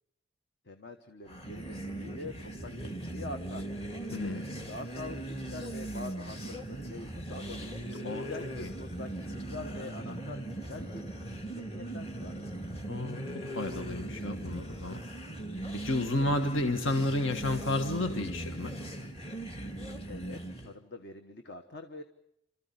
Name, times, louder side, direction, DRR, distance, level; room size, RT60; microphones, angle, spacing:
voice 1, 0.6-3.6 3.9-12.3 20.1-22.0, left 2 dB, 55° left, 6 dB, 1.2 m, -45 dB
sound 1, 1.2-20.7, right 1 dB, 30° left, 2.2 m, -39 dB
voice 2, 4.1-4.6 8.0-8.3 8.6-8.7 12.9-13.2 13.5-15.0 15.8-18.7, left 2 dB, 70° left, 6 dB, 1.5 m, -31 dB
29.0 x 14.0 x 9.5 m, 0.81 s
head